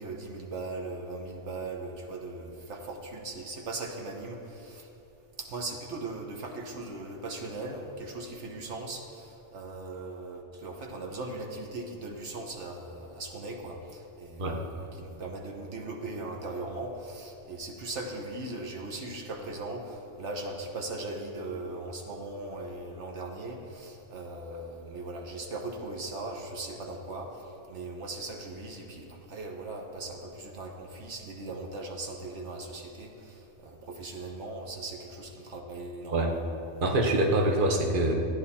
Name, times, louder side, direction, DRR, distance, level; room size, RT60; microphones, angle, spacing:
voice 1, 0.0-4.9 5.4-27.3 27.7-33.1 33.6-36.3 36.8-37.0, right 2 dB, 80° right, 1 dB, 1.3 m, -39 dB
voice 2, 36.8-38.1, right 1 dB, 50° right, 1 dB, 1.3 m, -25 dB
15.0 x 9.9 x 4.2 m, 3.0 s
omnidirectional pair, 1.2 m